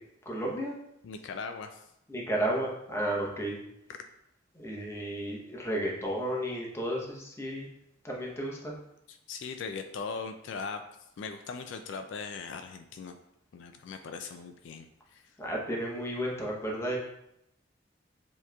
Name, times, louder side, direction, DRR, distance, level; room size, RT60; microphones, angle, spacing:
voice 1, 0.3-0.7 2.1-3.6 4.6-7.7 8.0-8.8 15.4-17.0, right 1 dB, 15° left, -3 dB, 0.8 m, -33 dB
voice 2, 1.0-1.9 9.1-10.8 11.2-13.2 13.5-15.4, left 5 dB, 70° left, 6 dB, 0.3 m, -39 dB
6.9 x 3.0 x 2.3 m, 0.81 s
head